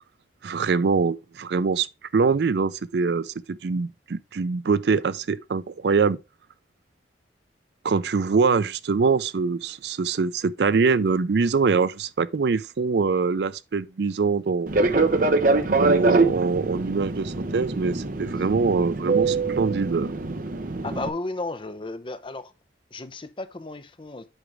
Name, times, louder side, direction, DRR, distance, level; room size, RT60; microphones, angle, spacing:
voice 1, 0.4-1.9 2.1-6.2 7.8-14.7 15.7-20.1, right 4 dB, 65° right, 0.4 m, -23 dB
Fixed-wing aircraft airplane, 14.7-21.1, right 3 dB, 50° right, 0.8 m, -24 dB
voice 2, 20.8-22.5 22.9-24.2, left 2 dB, 30° left, 0.6 m, -33 dB
8.1 x 5.1 x 3.4 m
head